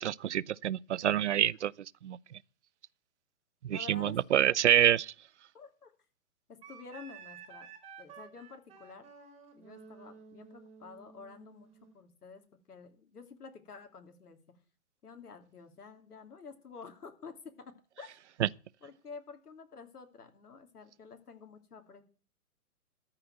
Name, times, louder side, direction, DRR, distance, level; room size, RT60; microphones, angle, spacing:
voice 1, 0.0-1.7 2.0-2.2 3.6-5.1 18.4-18.5, right 11 dB, 50° right, 0.5 m, -27 dB
voice 2, 3.7-4.6 5.5-5.9 6.5-7.7 8.0-9.0 9.6-11.7 11.9-12.4 12.7-14.4 15.0-18.1 18.8-22.0, left 5 dB, 80° left, 2.8 m, -50 dB
Wind instrument woodwind instrument, 6.6-12.0, right 6 dB, 15° right, 2.7 m, -52 dB
14.0 x 5.9 x 8.9 m
hypercardioid pair, 140°, 45 cm